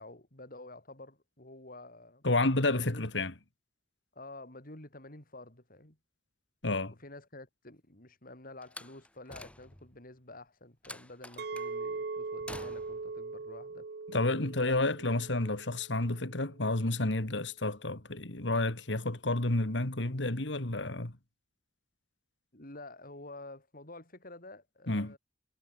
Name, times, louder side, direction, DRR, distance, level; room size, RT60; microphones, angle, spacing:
voice 1, 0.0-2.2 2.7-3.1 4.1-6.0 7.0-15.2 16.7-16.8 22.5-25.2, left 2 dB, 50° left, 5.7 m, -50 dB
voice 2, 2.2-3.3 6.6-6.9 14.1-21.1 24.9-25.1, left 2 dB, 80° left, 2.4 m, -30 dB
Slam, 8.6-10.0 10.8-11.7 12.5-13.1, left 1 dB, 5° left, 1.2 m, -47 dB
Chink clink, 11.4-16.6, right 4 dB, 60° right, 0.7 m, -41 dB
head